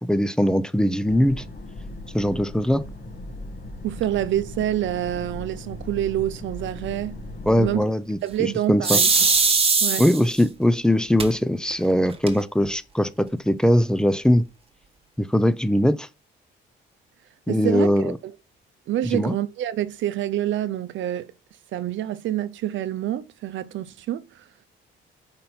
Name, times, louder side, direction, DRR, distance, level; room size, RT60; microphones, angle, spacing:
voice 1, 0.0-1.4 2.1-2.8 7.5-9.0 10.0-14.4 15.2-16.1 17.5-18.2 19.1-19.3, left 1 dB, 5° left, 0.5 m, -21 dB
sound 1, 1.1-7.8, left 1 dB, 50° left, 1.4 m, -38 dB
voice 2, 3.8-7.2 7.6-7.9 8.2-9.3 9.8-10.0 17.5-18.3 18.9-21.3 21.7-24.4, right 12 dB, 75° right, 0.6 m, -27 dB
sound 2, 8.8-10.4 11.2-11.3 11.7-11.8 12.1-12.7, right 4 dB, 30° right, 1.2 m, -20 dB
5.2 x 4.1 x 4.3 m
cardioid pair, 90°, 20 cm